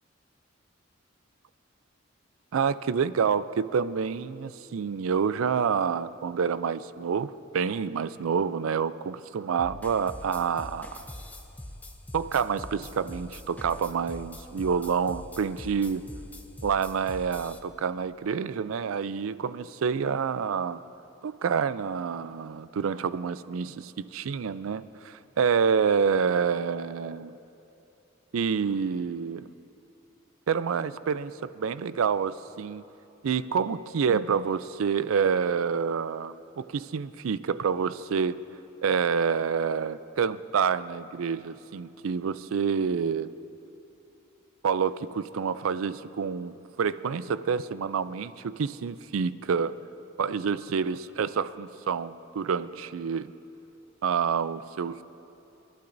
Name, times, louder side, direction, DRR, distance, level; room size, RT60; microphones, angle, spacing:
voice 1, 2.5-11.0 12.1-16.0 16.6-20.8 21.2-27.4 28.3-29.5 30.5-32.8 33.2-38.4 38.8-43.3 44.6-49.8 50.2-53.3 54.0-55.0, right 6 dB, 75° right, 15 dB, 0.4 m, -28 dB
sound 1, 9.6-17.6, left 1 dB, 10° left, 0.6 m, -43 dB
28.5 x 11.5 x 2.6 m, 2.9 s
head